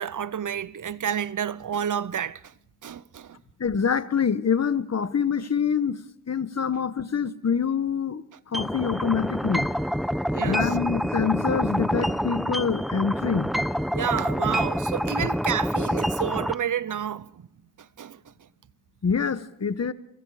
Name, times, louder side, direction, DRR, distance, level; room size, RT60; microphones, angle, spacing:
voice 1, 0.0-2.5 2.8-3.4 10.3-10.8 13.9-17.5 17.8-18.2, right 9 dB, 70° right, 0.8 m, -30 dB
voice 2, 3.6-6.0 6.3-9.7 10.4-13.5 19.0-19.9, left 6 dB, 50° left, 1.4 m, -25 dB
sound 1, 8.5-16.5, equal, ahead, 0.9 m, -27 dB
27.5 x 24.5 x 5.1 m
cardioid pair, 60°, 32 cm